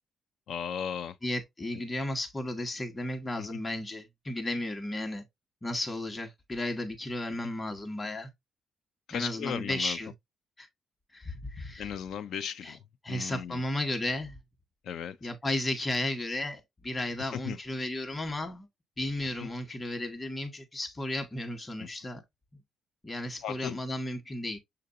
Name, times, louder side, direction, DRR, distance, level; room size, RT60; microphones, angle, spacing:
voice 1, 0.5-1.2 3.4-3.5 9.1-10.0 11.8-12.8 13.1-13.6 14.8-15.3 17.3-17.6 19.4-19.5 21.8-21.9 23.4-23.8, left 8 dB, 70° left, 0.4 m, -36 dB
voice 2, 1.2-5.2 5.6-8.3 9.1-10.1 10.6-10.7 11.1-11.9 12.6-12.8 13.0-14.4 15.2-18.7 19.0-22.2 23.0-24.6, left 1 dB, 25° left, 1.2 m, -34 dB
6.7 x 2.6 x 2.6 m
cardioid pair, 90°, 0 cm